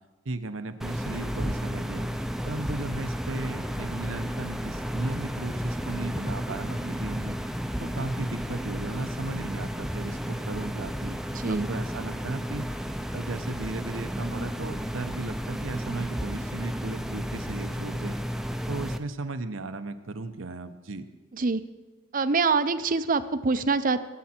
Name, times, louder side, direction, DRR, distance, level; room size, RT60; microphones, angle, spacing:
voice 1, 0.2-2.1 2.4-7.4 7.8-11.2 11.5-12.7 13.1-18.2 18.7-21.1, right 2 dB, 85° right, 9 dB, 0.9 m, -35 dB
sound 1, 0.8-19.0, equal, ahead, 0.6 m, -32 dB
voice 2, 11.3-11.7 21.3-21.6 22.1-24.0, right 4 dB, 45° right, 12 dB, 0.6 m, -25 dB
21.0 x 8.6 x 4.4 m, 1.2 s
head